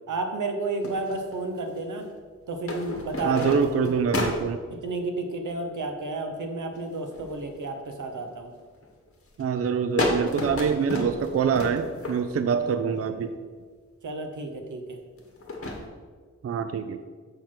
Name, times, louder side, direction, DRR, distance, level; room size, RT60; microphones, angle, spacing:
voice 1, 0.1-2.1 2.5-3.5 3.8-3.9 4.8-8.5 12.6-12.7 14.0-15.0, right 2 dB, 90° right, 5 dB, 0.9 m, -31 dB
sound 1, 0.8-1.8 2.6-4.7 6.8-7.4 7.9-8.3 8.8-9.1 9.4-9.5 10.0-12.5 13.3-13.4 15.2-15.8, left 2 dB, 50° left, 1.3 m, -30 dB
voice 2, 3.2-4.6 9.4-13.3 16.4-17.0, right 6 dB, 50° right, 10 dB, 0.4 m, -25 dB
6.7 x 4.3 x 5.9 m, 1.5 s
wide cardioid pair, 110°, 30 cm